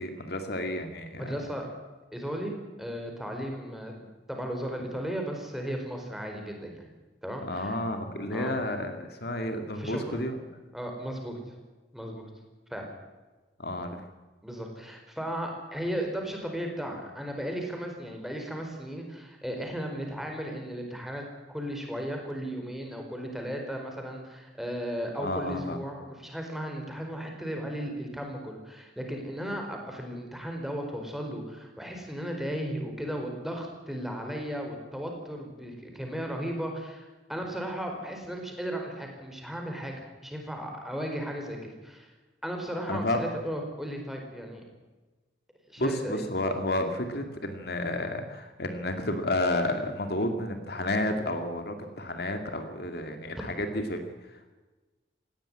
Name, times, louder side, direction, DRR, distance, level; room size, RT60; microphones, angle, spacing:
voice 1, 0.0-1.4 7.4-10.4 13.6-14.1 25.2-25.8 42.9-43.2 45.8-54.5, left 1 dB, 60° left, 6 dB, 2.3 m, -31 dB
voice 2, 1.2-1.7 2.1-6.9 7.2-7.8 8.3-8.6 9.8-10.2 10.7-11.4 11.9-12.3 12.7-12.9 14.4-21.2 21.5-41.6 41.8-42.1 42.4-44.6 45.7-46.2, equal, ahead, 2 dB, 4.6 m, -35 dB
18.5 x 16.5 x 9.9 m, 1.2 s
head